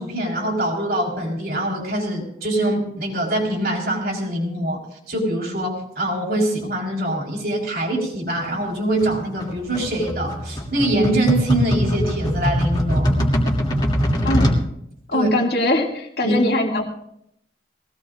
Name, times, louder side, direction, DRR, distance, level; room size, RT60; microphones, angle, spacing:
voice 1, 0.0-4.8 5.1-13.1 15.1-15.3 16.2-16.4, right 1 dB, 55° right, 0 dB, 4.0 m, -24 dB
sound 1, 9.0-14.6, equal, 25° left, 2.4 m, -21 dB
voice 2, 15.1-17.0, left 1 dB, 60° left, 0 dB, 2.2 m, -22 dB
22.0 x 17.5 x 2.5 m, 0.74 s
head